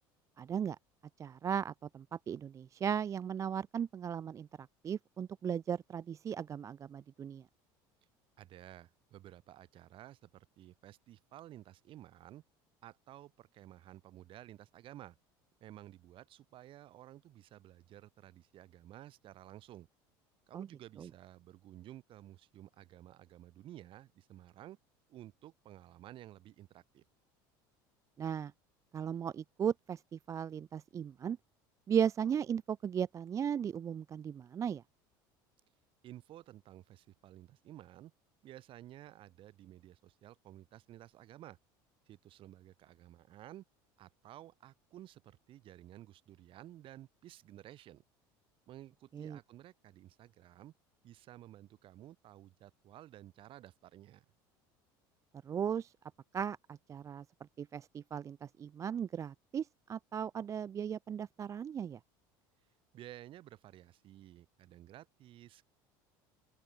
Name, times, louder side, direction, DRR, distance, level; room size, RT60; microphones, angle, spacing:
voice 1, 0.4-0.8 1.2-4.5 4.8-7.4 20.5-20.7 21.0-21.1 28.2-28.5 28.9-31.4 31.9-34.8 49.1-49.4 55.4-55.9 56.3-57.2 57.6-62.0, right 8 dB, 30° right, 0.4 m, -36 dB
voice 2, 8.4-12.4 12.8-15.2 15.6-19.9 20.5-24.8 25.1-27.0 36.0-38.1 38.4-41.6 42.1-43.6 44.0-48.0 48.7-50.7 51.0-54.2 62.9-65.7, right 13 dB, 50° right, 6.8 m, -53 dB
open air
supercardioid pair, 105°, 11 cm